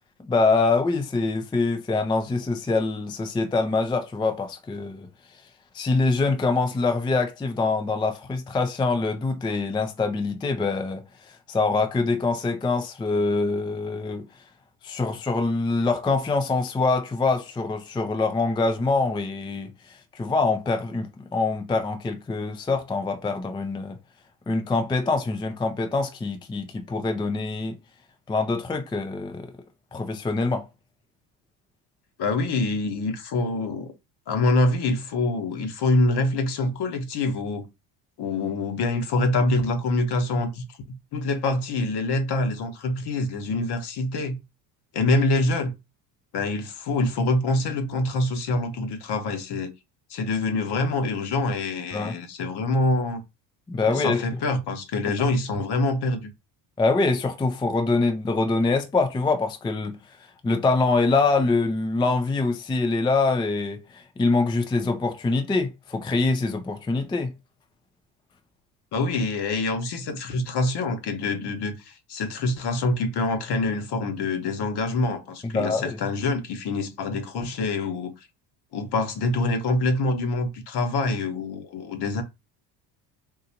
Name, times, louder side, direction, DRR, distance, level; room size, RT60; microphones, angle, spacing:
voice 1, 0.2-5.1 5.7-14.3 14.8-24.0 24.5-27.8 28.3-29.5 29.9-30.7 51.9-52.1 53.7-54.2 56.8-60.0 60.4-67.4 75.4-76.0, left 3 dB, 10° left, 0.4 m, -24 dB
voice 2, 32.2-33.9 34.3-37.7 38.2-44.4 44.9-45.8 46.3-49.7 50.1-53.2 53.8-56.3 68.9-78.1 78.7-82.2, left 2 dB, 50° left, 1.1 m, -25 dB
3.8 x 2.5 x 2.9 m
supercardioid pair, 80°, 50 cm